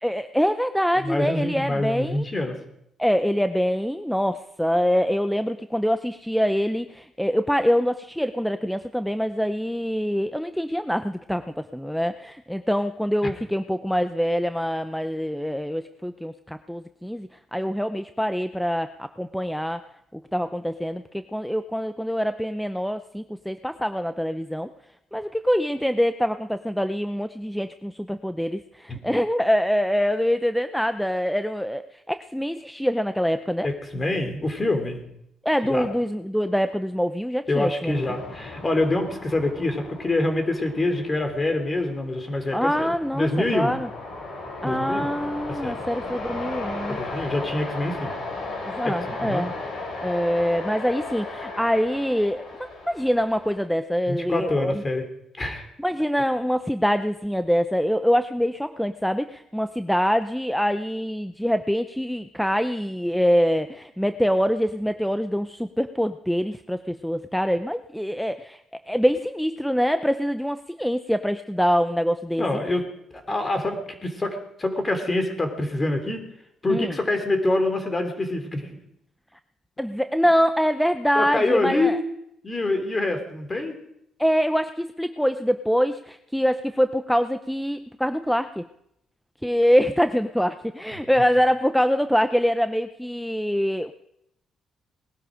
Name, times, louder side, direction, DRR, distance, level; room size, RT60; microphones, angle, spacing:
voice 1, 0.0-2.3 3.0-11.4 11.7-19.8 20.1-24.7 25.1-33.7 35.4-38.0 42.5-43.9 44.6-47.3 48.7-49.5 50.0-54.7 55.8-72.5 76.7-77.0 79.8-82.0 84.2-88.7 89.4-93.9, equal, ahead, 10 dB, 0.7 m, -24 dB
voice 2, 1.0-2.6 13.2-13.3 28.9-29.0 33.6-35.0 35.6-35.9 37.5-43.8 44.6-45.1 45.5-45.8 46.9-48.1 48.8-49.4 54.1-55.0 55.4-55.6 72.4-72.8 73.1-76.2 76.6-78.8 81.1-81.9 82.4-83.8 90.9-91.0, left 2 dB, 25° left, 6 dB, 3.3 m, -26 dB
sound 1, 37.9-53.7, left 2 dB, 60° left, 5.8 m, -36 dB
19.5 x 12.0 x 5.0 m, 0.79 s
cardioid pair, 90°, 0 cm